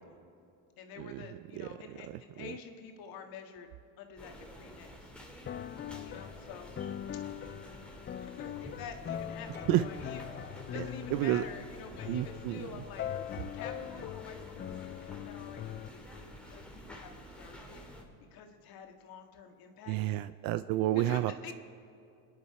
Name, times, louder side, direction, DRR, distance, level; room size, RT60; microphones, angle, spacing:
voice 1, 0.8-3.7 4.0-5.1 6.0-6.8 8.2-10.2 10.5-13.1 13.5-17.8 18.3-20.2 20.9-21.5, left 6 dB, 80° left, 4 dB, 1.8 m, -48 dB
sound 1, 4.2-18.0, equal, 5° left, 2.1 m, -50 dB
sound 2, 5.5-15.9, left 10 dB, 30° left, 0.5 m, -41 dB
voice 2, 11.1-11.4 12.1-12.7 19.9-21.5, right 15 dB, 75° right, 13 dB, 0.5 m, -30 dB
26.0 x 10.5 x 4.8 m, 2.5 s
cardioid pair, 120°, 35 cm